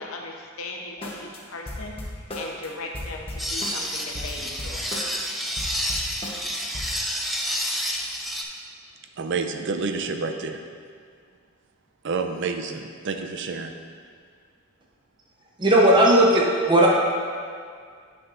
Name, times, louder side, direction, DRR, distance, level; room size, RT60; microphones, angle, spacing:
voice 1, 0.0-4.9, left 2 dB, 80° left, 1 dB, 0.8 m, -38 dB
sound 1, 1.0-1.4 1.7-2.7 2.9-5.3 5.6-7.0, left 1 dB, 25° left, 0.9 m, -35 dB
sound 2, 3.4-8.4, equal, ahead, 0.4 m, -29 dB
voice 2, 9.2-10.6 12.0-13.7, right 4 dB, 60° right, 6 dB, 0.5 m, -29 dB
voice 3, 15.6-16.9, right 1 dB, 20° right, -3 dB, 0.8 m, -16 dB
9.3 x 5.8 x 2.6 m, 2.1 s
head